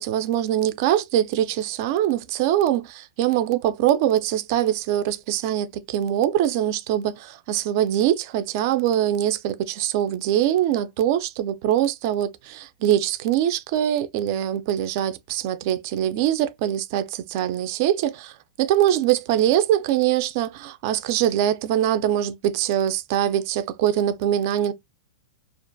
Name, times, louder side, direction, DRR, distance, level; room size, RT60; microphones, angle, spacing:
voice 1, 0.0-18.3 18.6-24.7, right 11 dB, 45° right, 0.3 m, -23 dB
2.4 x 2.2 x 2.5 m
supercardioid pair, 155°, 2 cm